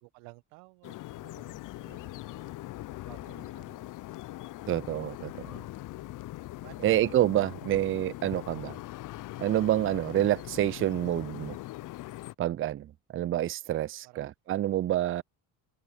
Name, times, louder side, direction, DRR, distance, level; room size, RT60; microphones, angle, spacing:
voice 1, 0.0-2.5 2.9-3.9 4.2-4.5 6.6-7.2 14.0-14.3 14.7-15.0, right 24 dB, 85° right, 1.4 m, -55 dB
sound 1, 0.8-12.3, left 17 dB, 45° left, 0.4 m, -41 dB
voice 2, 4.7-5.6 6.8-8.8 9.4-11.6 12.4-15.2, right 13 dB, 30° right, 0.4 m, -28 dB
supercardioid pair, 65°, 47 cm